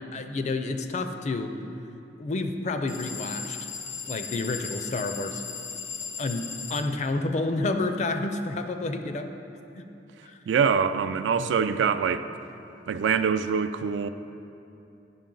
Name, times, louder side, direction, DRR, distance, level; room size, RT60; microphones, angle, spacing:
voice 1, 0.1-1.5 2.2-3.6 4.1-5.4 6.2-9.3 9.7-9.9 10.2-10.4 11.4-11.5, left 2 dB, 40° left, 7 dB, 0.4 m, -29 dB
sound 1, 2.9-6.9, left 6 dB, 80° left, 0.7 m, -37 dB
voice 2, 10.5-12.3 12.9-14.1, right 6 dB, 80° right, 11 dB, 0.3 m, -24 dB
10.5 x 5.2 x 3.8 m, 2.8 s
head